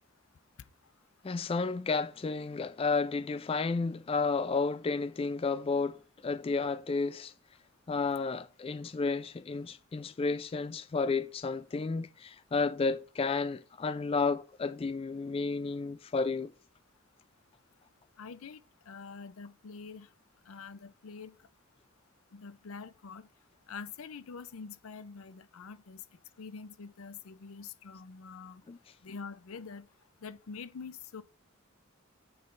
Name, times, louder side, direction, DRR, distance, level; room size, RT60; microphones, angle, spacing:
voice 1, 1.2-7.3 7.9-16.5 28.7-28.8, left 4 dB, 25° left, 0.3 m, -32 dB
voice 2, 18.2-18.6 18.9-20.1 20.5-21.3 22.3-23.3 23.7-26.0 26.4-28.6 29.0-29.9 30.2-31.2, left 5 dB, 85° left, 0.5 m, -45 dB
7.9 x 3.3 x 5.2 m
head